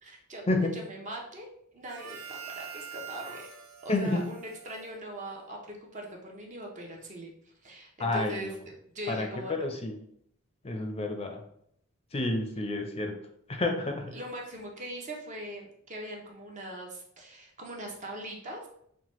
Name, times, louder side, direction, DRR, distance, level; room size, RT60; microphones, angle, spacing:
voice 1, 0.0-0.4 0.7-1.5 1.7-3.4 3.8-7.3 7.6-8.5 8.9-9.7 14.1-18.7, equal, 35° right, 0 dB, 0.7 m, -41 dB
Harmonica, 1.8-5.6, right 8 dB, 75° right, 0.6 m, -45 dB
voice 2, 3.9-4.2 8.0-8.5 9.1-9.9 10.6-11.4 12.1-13.1 13.5-14.1, left 2 dB, 30° left, 4 dB, 0.5 m, -29 dB
5.7 x 2.1 x 3.0 m, 0.70 s
head